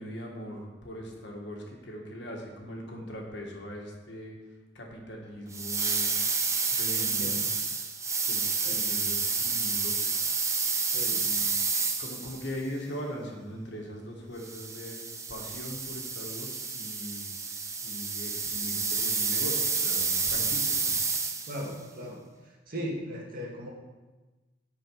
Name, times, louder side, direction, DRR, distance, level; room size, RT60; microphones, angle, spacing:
voice 1, 0.0-4.4 4.7-6.2 6.7-7.5 8.3-9.9 11.1-11.6 12.0-15.0 15.3-20.9, equal, 70° left, 0 dB, 1.6 m, -40 dB
sound 1, 5.5-12.5 14.4-21.7, right 4 dB, 15° right, 0.6 m, -29 dB
voice 2, 7.0-7.4 8.6-8.7 10.9-11.2 21.5-22.2 22.7-23.7, equal, 50° right, -2 dB, 1.9 m, -37 dB
12.5 x 4.6 x 4.7 m, 1.2 s
head